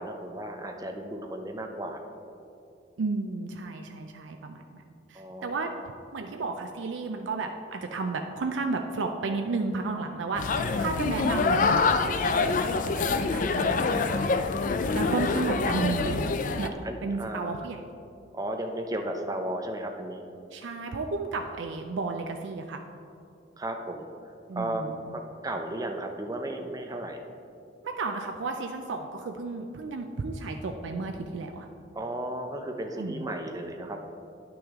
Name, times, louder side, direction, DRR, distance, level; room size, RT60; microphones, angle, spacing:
voice 1, 0.0-2.0 5.1-5.6 16.8-17.6 18.3-20.2 23.6-24.1 24.6-24.8 25.1-27.2 32.0-34.0, right 1 dB, 20° right, 4 dB, 0.6 m, -34 dB
voice 2, 3.0-4.8 5.1-5.7 6.1-14.3 14.9-16.3 16.6-16.7 17.0-17.8 20.5-22.8 24.5-25.2 27.8-31.7 33.0-33.3, right 3 dB, 80° right, 4 dB, 0.4 m, -33 dB
sound 1, 10.4-16.7, left 4 dB, 45° left, 0.3 m, -26 dB
9.7 x 6.1 x 3.6 m, 2.6 s
head